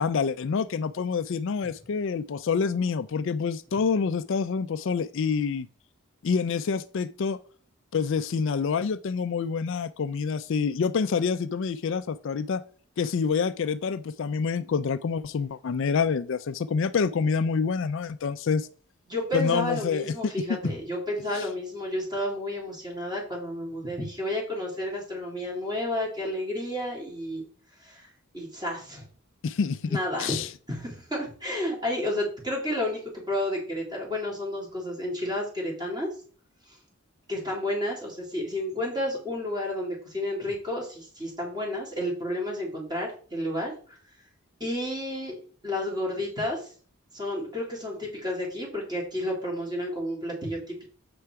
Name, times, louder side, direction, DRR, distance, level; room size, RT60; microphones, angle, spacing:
voice 1, 0.0-5.7 6.2-7.4 7.9-12.6 13.0-18.7 19.3-20.3 21.3-21.4 29.4-30.5, left 5 dB, 60° left, 0.4 m, -27 dB
voice 2, 19.1-27.4 27.8-28.1 28.3-29.1 29.9-30.4 30.7-36.1 37.3-43.7 44.6-45.3 45.6-46.7 47.1-50.8, left 1 dB, 20° right, 3.5 m, -31 dB
7.7 x 5.6 x 4.8 m
head